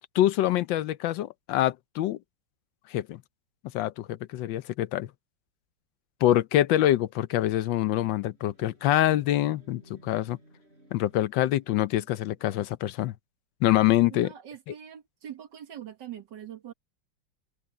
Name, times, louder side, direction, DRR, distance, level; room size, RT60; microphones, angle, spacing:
voice 1, 0.1-2.2 2.9-3.2 3.7-5.1 6.2-10.4 10.9-13.1 13.6-14.3 14.7-14.8, left 13 dB, 80° left, 1.4 m, -25 dB
sound 1, 7.6-12.7, right 1 dB, 30° right, 7.6 m, -59 dB
voice 2, 14.1-16.7, right 10 dB, 65° right, 2.2 m, -43 dB
omnidirectional pair, 2.0 m